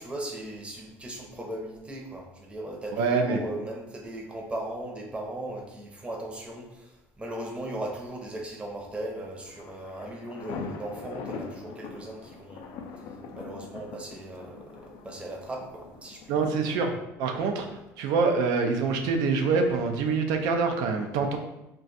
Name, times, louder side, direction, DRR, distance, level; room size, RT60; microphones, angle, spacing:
voice 1, 0.0-12.8 13.3-16.5 17.6-17.7, right 1 dB, 15° right, 0 dB, 0.7 m, -38 dB
voice 2, 3.0-3.4 16.3-16.9 17.2-21.4, right 4 dB, 75° right, 5 dB, 0.5 m, -25 dB
sound 1, 9.3-16.9, left 5 dB, 65° left, 0.4 m, -42 dB
2.4 x 2.3 x 4.0 m, 0.93 s
supercardioid pair, 100°, 7 cm